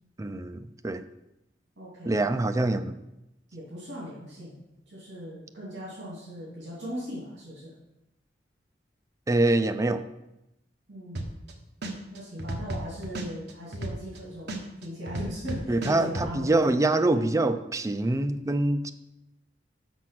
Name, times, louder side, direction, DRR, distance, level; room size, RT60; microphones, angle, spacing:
voice 1, 0.2-1.1 2.1-2.9 9.3-10.1 15.7-18.9, right 2 dB, 20° right, 0.4 m, -25 dB
voice 2, 1.8-2.2 3.5-4.6 4.9-7.7 10.9-11.3 12.1-16.8 17.1-17.4, equal, 80° right, 2.8 m, -39 dB
sound 1, 11.2-11.5 11.8-14.2 14.5-16.3, right 2 dB, 65° right, 1.0 m, -33 dB
6.1 x 6.0 x 5.9 m
head